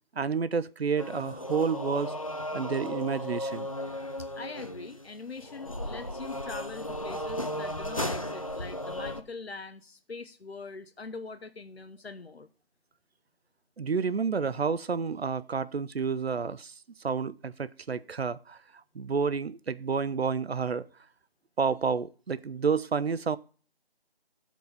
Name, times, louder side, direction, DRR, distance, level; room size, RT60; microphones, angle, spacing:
voice 1, 0.1-2.1 2.5-3.7 13.8-16.7 17.0-18.6 18.9-20.9 21.6-23.4, right 5 dB, 80° right, 0.7 m, -30 dB
sound 1, 1.0-9.2, left 1 dB, 35° left, 0.6 m, -35 dB
voice 2, 4.4-12.5, left 4 dB, 85° left, 1.0 m, -43 dB
13.0 x 4.7 x 5.3 m
figure-of-eight pair, 170°, 30 cm